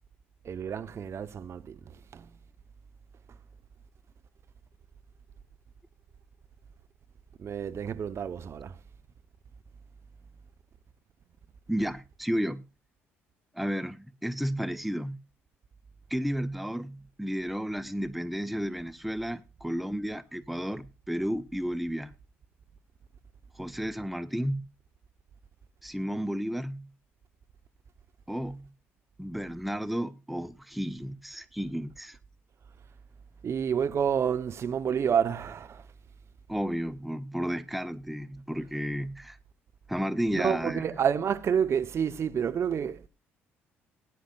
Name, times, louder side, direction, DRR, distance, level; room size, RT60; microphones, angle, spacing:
voice 1, 0.4-2.3 3.3-3.4 7.4-8.8 33.4-35.9 40.3-43.1, right 7 dB, 45° right, 0.9 m, -29 dB
voice 2, 11.7-12.6 13.5-15.2 16.1-22.1 23.5-24.7 25.8-26.9 28.3-28.7 29.2-32.2 36.5-39.4 39.9-40.8, equal, ahead, 0.8 m, -32 dB
19.5 x 10.0 x 2.5 m
figure-of-eight pair, 50°, 6 cm